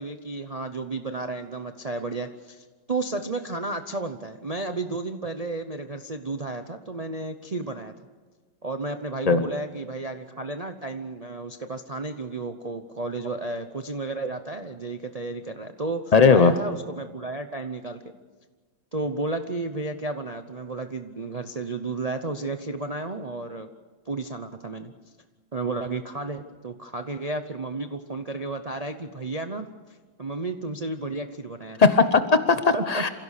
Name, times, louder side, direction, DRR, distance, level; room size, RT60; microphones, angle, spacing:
voice 1, 0.0-7.9 8.6-18.0 18.9-23.7 24.1-24.9 25.5-31.8 32.7-33.0, right 2 dB, 55° right, 7 dB, 0.4 m, -32 dB
voice 2, 16.1-16.5 31.8-33.1, left 4 dB, 75° left, 10 dB, 0.3 m, -18 dB
27.5 x 16.5 x 6.6 m, 1.4 s
omnidirectional pair, 2.0 m